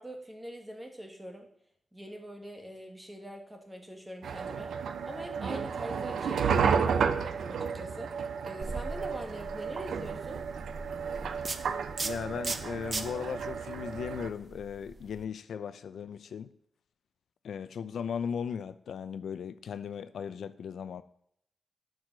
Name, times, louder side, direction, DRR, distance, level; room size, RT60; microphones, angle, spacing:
voice 1, 0.0-1.5 1.9-4.7 5.1-8.1 8.4-10.4, equal, 10° right, 1.5 m, -43 dB
sound 1, 4.2-14.3, right 6 dB, 85° right, 0.7 m, -32 dB
sound 2, 8.6-15.2, right 3 dB, 30° right, 0.7 m, -40 dB
voice 2, 12.0-16.5 17.4-21.0, left 7 dB, 80° left, 0.5 m, -37 dB
12.0 x 4.8 x 6.1 m
wide cardioid pair, 170°, 0 cm